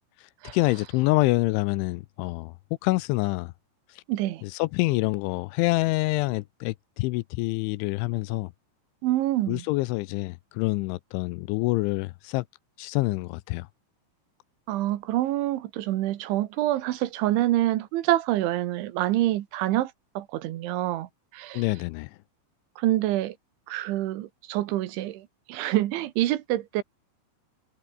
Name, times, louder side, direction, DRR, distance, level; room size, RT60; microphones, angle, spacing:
voice 1, 0.5-2.5 2.8-3.5 4.4-8.5 9.5-12.5 12.8-13.7 21.5-22.1, left 22 dB, 80° left, 2.9 m, -26 dB
voice 2, 4.1-4.4 9.0-9.6 14.7-21.1 21.3-21.6 22.8-23.4 23.7-26.8, right 15 dB, 75° right, 3.5 m, -26 dB
omnidirectional pair, 5.7 m